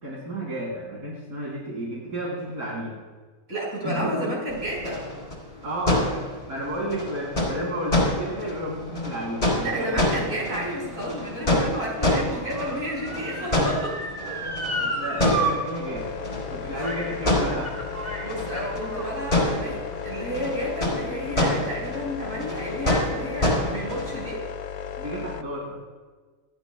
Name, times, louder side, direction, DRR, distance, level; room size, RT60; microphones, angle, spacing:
voice 1, 0.0-3.0 3.8-4.3 5.6-9.9 10.5-10.6 13.4-13.5 14.8-16.1 16.5-17.8 25.0-25.8, equal, 90° right, -5 dB, 3.5 m, -32 dB
voice 2, 3.5-5.0 9.6-14.5 16.6-16.7 18.2-24.4, equal, 65° right, -4 dB, 4.9 m, -31 dB
sound 1, 4.5-24.3, left 1 dB, 35° left, 3.9 m, -28 dB
Motor vehicle (road) / Siren, 10.4-15.5 15.9-16.0 16.8-17.2 17.5-19.2 19.9-20.0, right 2 dB, 20° right, 3.1 m, -33 dB
sound 2, 15.9-25.4, left 8 dB, 90° left, 0.4 m, -35 dB
25.5 x 11.0 x 2.2 m, 1.4 s
omnidirectional pair, 1.6 m